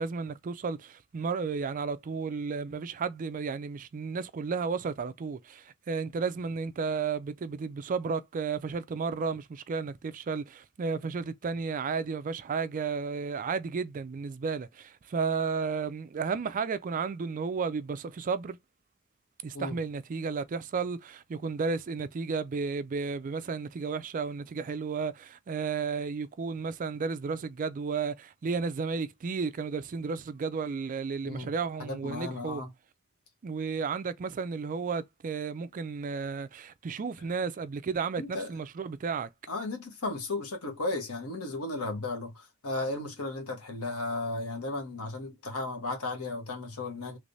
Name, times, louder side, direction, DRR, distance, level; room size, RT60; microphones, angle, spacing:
voice 1, 0.0-18.6 19.4-32.6 33.4-39.3, right 5 dB, 35° right, 0.3 m, -33 dB
voice 2, 31.8-32.7 38.2-38.5 39.5-47.2, left 2 dB, 80° left, 1.2 m, -35 dB
3.3 x 3.1 x 2.6 m
head